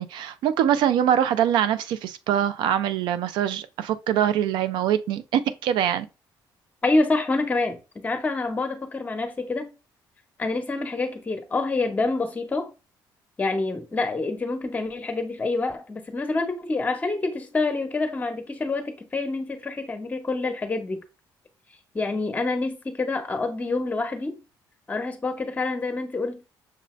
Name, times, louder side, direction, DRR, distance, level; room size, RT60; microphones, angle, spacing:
voice 1, 0.0-6.1, right 10 dB, 85° right, 0.4 m, -23 dB
voice 2, 6.8-9.7 10.4-12.7 13.4-21.0 21.9-24.4 24.9-26.4, left 3 dB, 20° left, 0.9 m, -27 dB
6.5 x 2.7 x 3.1 m
cardioid pair, 145°, 8 cm